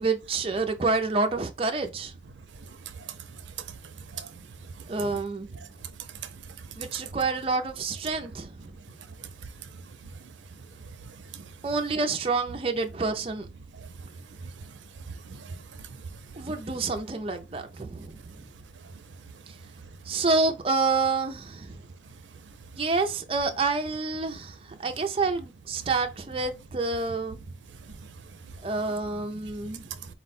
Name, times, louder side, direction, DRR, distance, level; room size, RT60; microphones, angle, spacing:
voice 1, 0.0-2.1 4.9-5.5 6.8-8.5 11.6-13.5 16.4-18.2 20.1-21.8 22.8-24.5 24.8-27.4 28.6-29.8, right 3 dB, 30° right, 0.4 m, -28 dB
voice 2, 2.5-5.2 5.5-7.1 8.6-11.7 13.7-16.7 18.5-19.5 19.8-20.2 22.0-22.8 27.7-28.8 29.1-30.1, right 6 dB, 90° right, 0.6 m, -43 dB
4.2 x 2.2 x 4.1 m
head